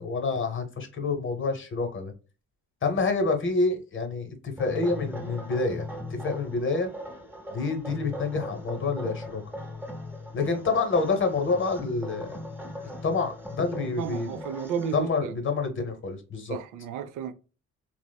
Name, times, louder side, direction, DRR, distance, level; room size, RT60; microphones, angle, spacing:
voice 1, 0.0-2.1 2.8-6.9 7.5-9.4 10.3-12.4 13.0-14.3 14.9-16.6, left 4 dB, 40° left, 1.0 m, -28 dB
sound 1, 4.6-15.0, left 1 dB, 5° right, 0.8 m, -39 dB
voice 2, 14.0-15.4 16.5-17.3, right 7 dB, 75° right, 0.5 m, -33 dB
2.9 x 2.0 x 2.2 m
supercardioid pair, 65°, 31 cm